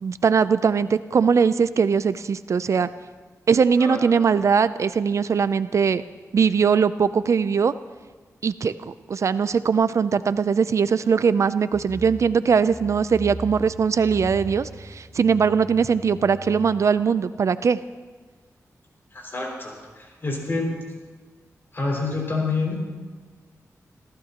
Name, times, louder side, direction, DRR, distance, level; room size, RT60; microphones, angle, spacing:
voice 1, 0.0-2.9 3.5-6.0 6.3-7.7 8.4-17.8, right 6 dB, 60° right, 14 dB, 0.4 m, -21 dB
voice 2, 3.8-4.1 19.1-20.8 21.7-22.8, left 3 dB, 40° left, -2 dB, 5.6 m, -27 dB
sound 1, 11.7-16.7, right 1 dB, 20° left, 5.2 m, -39 dB
27.5 x 15.0 x 2.9 m, 1.4 s
wide cardioid pair, 115°, 6 cm